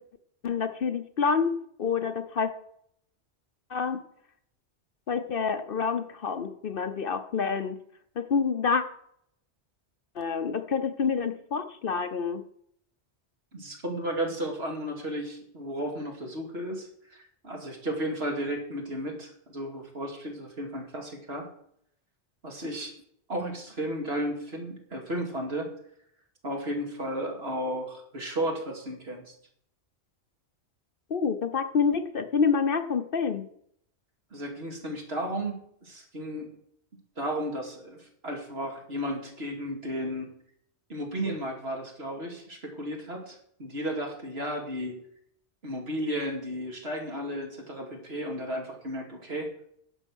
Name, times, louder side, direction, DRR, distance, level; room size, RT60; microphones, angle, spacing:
voice 1, 0.4-1.5 1.8-2.5 3.7-4.0 5.1-7.8 8.2-8.8 10.2-12.4 31.1-33.4, left 5 dB, 55° left, 9 dB, 0.9 m, -27 dB
voice 2, 13.5-21.5 22.4-22.9 23.3-25.7 26.4-29.3 34.3-36.5 37.2-40.3 40.9-45.0 45.6-49.5, equal, 60° right, 1 dB, 2.8 m, -34 dB
11.0 x 8.0 x 6.3 m, 0.69 s
omnidirectional pair, 1.2 m